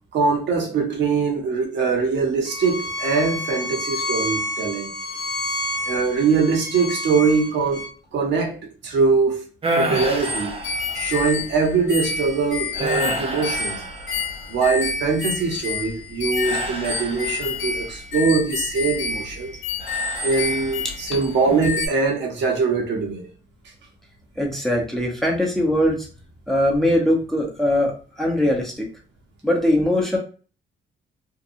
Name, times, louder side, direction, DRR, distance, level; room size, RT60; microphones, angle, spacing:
voice 1, 0.1-4.9 5.9-7.9 8.1-9.4 9.8-10.6 10.9-13.8 14.5-19.5 20.2-23.3, right 4 dB, 65° right, 0.9 m, -22 dB
Bowed string instrument, 2.5-7.9, left 1 dB, 55° left, 0.7 m, -29 dB
sound 1, 9.6-11.3 11.9-12.2 12.7-14.6 16.4-17.8 19.8-20.9 21.3-21.8, right 1 dB, 30° right, 0.6 m, -30 dB
sound 2, 9.9-21.3 21.6-21.9, left 4 dB, 90° left, 0.7 m, -29 dB
voice 2, 24.4-26.1 26.5-28.9 29.4-30.2, left 1 dB, ahead, 0.8 m, -21 dB
2.7 x 2.3 x 2.6 m
cardioid pair, 90°, 20 cm